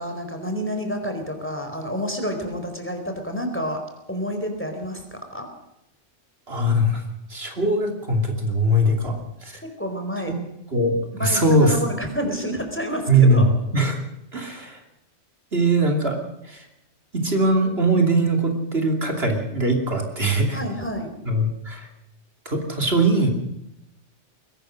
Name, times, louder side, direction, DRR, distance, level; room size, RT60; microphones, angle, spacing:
voice 1, 0.0-3.8 4.1-5.5 9.6-10.3 11.2-13.5 20.5-21.2, equal, 10° left, 4 dB, 4.3 m, -29 dB
voice 2, 6.5-7.0 7.3-9.6 10.7-11.8 13.1-13.5 13.7-14.0 14.3-14.8 15.5-16.2 16.5-16.6 17.1-20.6 21.3-21.9 22.4-23.3, right 1 dB, 55° right, 3 dB, 3.2 m, -21 dB
22.0 x 19.0 x 6.5 m, 0.86 s
omnidirectional pair, 1.2 m